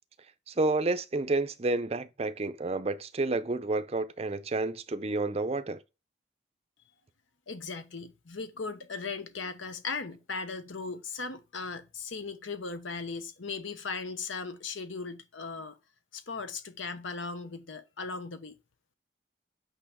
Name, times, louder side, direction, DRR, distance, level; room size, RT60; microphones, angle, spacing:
voice 1, 0.5-5.8, right 2 dB, 30° right, 0.5 m, -30 dB
voice 2, 7.5-15.8 16.1-18.6, left 4 dB, 80° left, 0.9 m, -38 dB
8.5 x 5.4 x 3.5 m
head